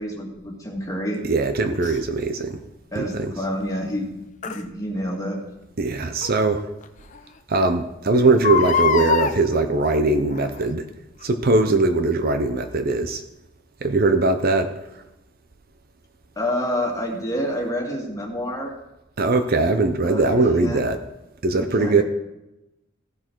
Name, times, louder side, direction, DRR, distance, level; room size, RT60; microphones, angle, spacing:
voice 1, 0.0-1.2 2.9-4.1 4.4-5.4 16.4-18.7 20.0-20.8 21.6-22.0, equal, 15° left, -1 dB, 2.1 m, -28 dB
voice 2, 1.2-2.6 3.0-3.3 5.8-6.7 7.5-10.9 11.2-13.2 13.8-14.7 19.2-21.0 21.4-22.0, right 3 dB, 50° right, 8 dB, 0.7 m, -20 dB
Crying sobbing, 1.8-2.0 4.4-4.6 6.2-6.3 6.8-6.9 7.1-7.2 8.3-9.4 10.3-10.6 11.2-11.3, left 6 dB, 40° left, 0.6 m, -22 dB
15.5 x 6.3 x 4.6 m, 0.94 s
head